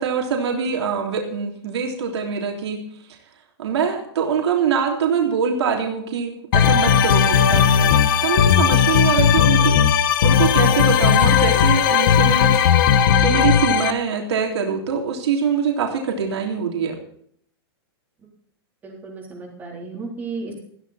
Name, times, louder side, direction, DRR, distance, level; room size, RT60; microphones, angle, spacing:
voice 1, 0.0-2.8 3.6-9.7 10.2-17.0, right 6 dB, 90° right, 1 dB, 3.5 m, -24 dB
sound 1, 6.5-13.9, left 8 dB, 55° left, 1.2 m, -16 dB
voice 2, 18.8-20.6, right 4 dB, 10° right, -1 dB, 3.7 m, -34 dB
15.0 x 14.0 x 4.3 m, 0.64 s
supercardioid pair, 170°, 14 cm